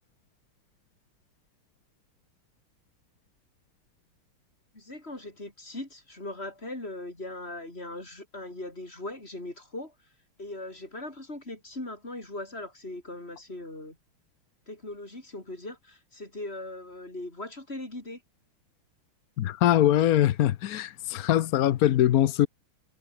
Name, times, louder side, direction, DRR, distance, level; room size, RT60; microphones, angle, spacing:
voice 1, 4.7-9.9 10.4-14.0 14.7-18.2, left 2 dB, 25° left, 6.1 m, -39 dB
voice 2, 19.4-22.5, left 12 dB, 70° left, 0.8 m, -22 dB
omnidirectional pair, 2.4 m